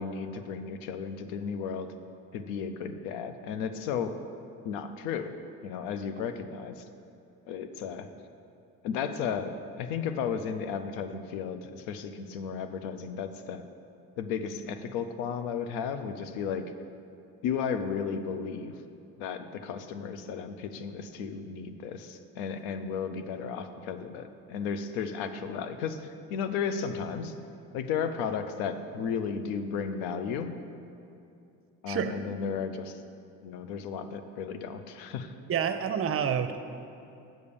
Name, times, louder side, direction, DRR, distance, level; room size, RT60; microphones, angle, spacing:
voice 1, 0.0-1.9 2.3-4.2 4.6-5.3 5.6-6.8 7.5-8.1 8.8-13.6 14.2-16.6 17.4-18.7 19.2-27.3 27.7-30.5 31.8-33.0 33.4-35.3, left 6 dB, 85° left, 9 dB, 0.6 m, -34 dB
voice 2, 35.5-36.6, right 8 dB, 45° right, 8 dB, 0.7 m, -28 dB
7.8 x 5.4 x 6.8 m, 2.6 s
supercardioid pair, 75°, 33 cm